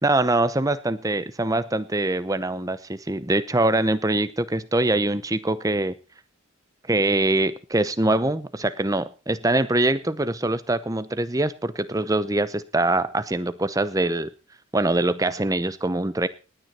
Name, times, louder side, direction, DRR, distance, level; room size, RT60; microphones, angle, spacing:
voice 1, 0.0-5.9 6.9-14.3 14.7-16.3, right 2 dB, 15° right, 14 dB, 0.7 m, -23 dB
19.0 x 9.5 x 4.3 m, 0.33 s
head